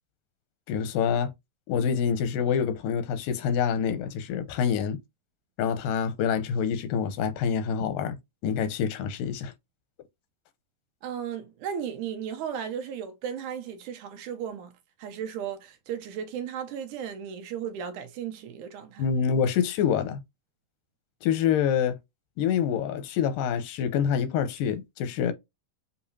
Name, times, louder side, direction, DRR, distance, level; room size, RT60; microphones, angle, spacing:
voice 1, 0.7-1.3 1.7-5.0 5.6-8.2 8.4-9.5 19.0-20.2 21.2-22.0 22.4-25.3, left 7 dB, 90° left, 2.4 m, -26 dB
voice 2, 11.0-14.7 15.0-19.0, right 8 dB, 75° right, 2.2 m, -35 dB
6.8 x 2.8 x 2.6 m
omnidirectional pair, 3.8 m